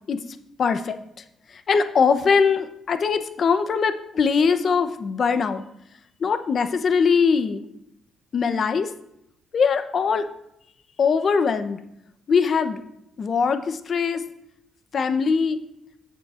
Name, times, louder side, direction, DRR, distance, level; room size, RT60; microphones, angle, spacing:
voice 1, 0.6-1.0 1.7-5.6 6.2-7.6 8.3-8.9 9.5-10.3 11.0-11.8 12.3-12.8 13.2-14.2 14.9-15.6, left 5 dB, 50° left, 9 dB, 0.7 m, -21 dB
14.0 x 6.8 x 2.5 m, 0.81 s
cardioid pair, 90°, 0 cm